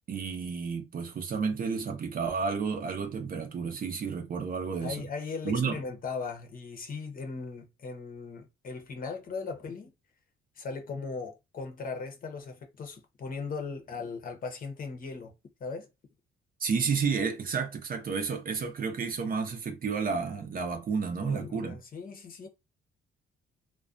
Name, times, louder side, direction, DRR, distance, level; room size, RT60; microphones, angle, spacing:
voice 1, 0.1-5.1 5.4-5.8 16.6-21.8, right 5 dB, 45° right, 0.6 m, -31 dB
voice 2, 4.8-9.9 10.6-15.3 15.6-15.9 21.2-22.5, left 4 dB, 45° left, 0.7 m, -38 dB
2.3 x 2.2 x 2.5 m
cardioid pair, 90°, 20 cm